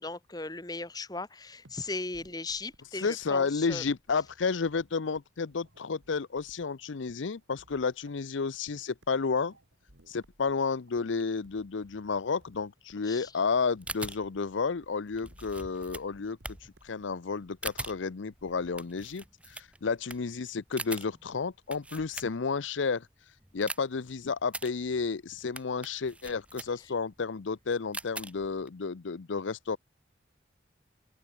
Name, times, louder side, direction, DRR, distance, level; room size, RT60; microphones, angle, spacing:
voice 1, 0.0-3.8 13.0-13.3, left 3 dB, 20° left, 1.4 m, -37 dB
sound 1, 1.6-17.1, right 1 dB, 90° right, 5.8 m, -62 dB
voice 2, 2.9-9.5 10.1-16.6 16.8-23.1 23.5-29.8, left 5 dB, 85° left, 0.6 m, -31 dB
sound 2, 13.6-22.7 23.1-28.7, right 2 dB, 5° right, 1.6 m, -43 dB
open air
head